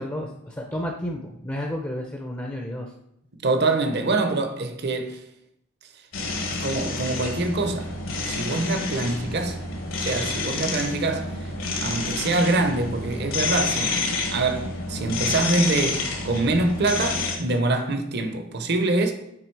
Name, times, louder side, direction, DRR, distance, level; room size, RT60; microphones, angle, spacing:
voice 1, 0.0-2.9 3.9-4.2 10.9-11.0, left 1 dB, 15° left, 0.6 m, -32 dB
voice 2, 3.3-5.2 6.5-7.9 8.2-9.6 10.0-11.5 11.8-19.1, right 2 dB, 50° right, 0.8 m, -25 dB
sound 1, 6.1-17.4, left 3 dB, 70° left, 1.5 m, -29 dB
8.9 x 3.7 x 4.7 m
head